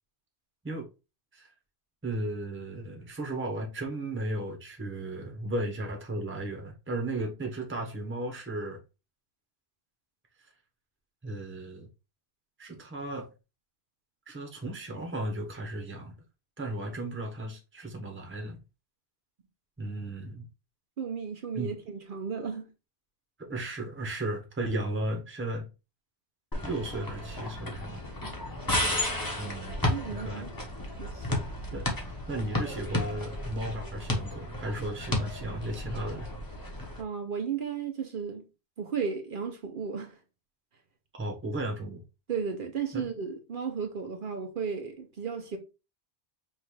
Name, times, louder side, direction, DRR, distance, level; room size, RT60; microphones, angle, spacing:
voice 1, 2.0-8.8 10.4-10.5 11.2-11.9 12.6-13.3 14.3-16.1 16.6-18.6 19.8-20.5 21.5-21.7 23.4-25.7 26.6-28.0 28.5-28.7 29.4-29.8 30.1-30.5 31.7-31.9 32.3-36.3 41.1-42.0 42.9-43.0, right 1 dB, 10° right, 0.9 m, -35 dB
voice 2, 21.0-22.7 29.8-30.5 31.0-31.4 37.0-38.5 38.8-40.2 42.3-45.6, right 6 dB, 55° right, 0.8 m, -34 dB
sound 1, 26.5-37.0, left 1 dB, 20° left, 1.0 m, -33 dB
5.5 x 2.5 x 3.0 m
omnidirectional pair, 1.1 m